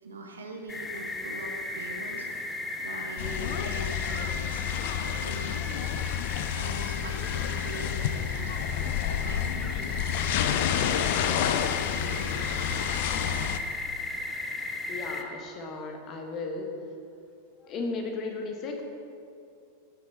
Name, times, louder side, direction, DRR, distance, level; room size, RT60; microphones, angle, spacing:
voice 1, 0.0-2.3 2.8-4.7 4.9-5.6 6.6-8.6 9.1-9.9 10.2-12.6 13.1-13.5, right 2 dB, 70° right, 2 dB, 1.3 m, -42 dB
sound 1, 0.7-15.2, left 2 dB, 15° left, 0.9 m, -36 dB
sound 2, 3.2-13.6, left 9 dB, 50° left, 0.5 m, -30 dB
voice 2, 3.2-3.6 14.9-16.7 17.6-18.8, left 3 dB, 35° left, 3 dB, 1.5 m, -35 dB
15.5 x 6.6 x 4.3 m, 2.5 s
figure-of-eight pair, 90°, 0 cm